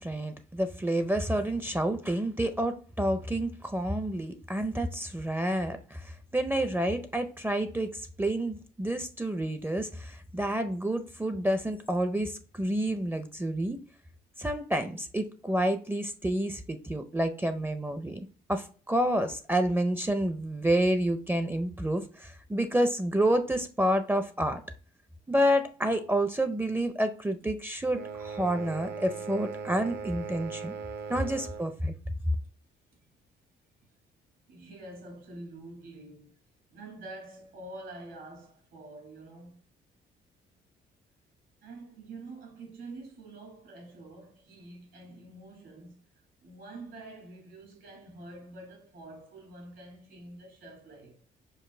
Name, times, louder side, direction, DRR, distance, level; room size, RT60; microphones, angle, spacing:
voice 1, 0.0-7.9 8.2-13.8 14.4-18.2 18.5-24.6 25.3-30.7 31.1-31.9, right 1 dB, 10° right, 0.5 m, -29 dB
sound 1, 27.9-31.8, right 5 dB, 55° right, 0.6 m, -39 dB
voice 2, 34.5-36.4 36.7-39.6 41.6-46.0 46.4-51.2, right 2 dB, 75° right, 2.0 m, -46 dB
5.3 x 2.1 x 3.2 m
cardioid pair, 90°, 20 cm